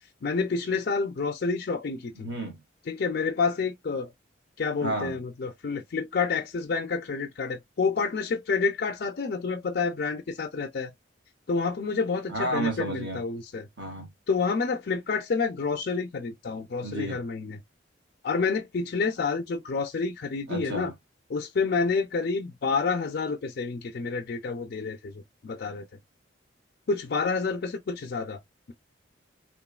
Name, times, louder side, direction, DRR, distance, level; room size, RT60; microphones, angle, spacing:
voice 1, 0.2-2.3 2.9-4.1 4.6-10.9 11.5-13.7 14.3-17.6 18.2-20.9 21.3-25.9 26.9-28.4, left 4 dB, 55° left, 0.4 m, -29 dB
voice 2, 2.2-2.6 4.8-5.2 12.3-13.2 13.8-14.1 16.8-17.2 20.5-20.9, right 1 dB, 65° right, 1.2 m, -31 dB
3.0 x 2.2 x 2.3 m
head